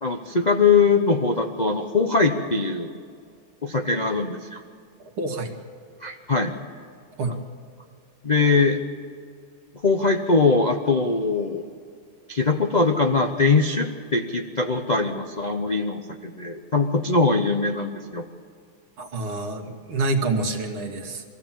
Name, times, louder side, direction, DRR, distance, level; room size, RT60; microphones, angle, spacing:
voice 1, 0.0-2.9 3.6-4.6 6.0-6.5 8.2-8.8 9.8-11.6 12.3-18.2, left 4 dB, 45° left, 3 dB, 0.5 m, -22 dB
voice 2, 5.0-5.5 7.2-7.4 19.0-21.2, right 3 dB, 80° right, 2 dB, 2.8 m, -27 dB
24.0 x 15.5 x 7.5 m, 2.3 s
omnidirectional pair, 2.3 m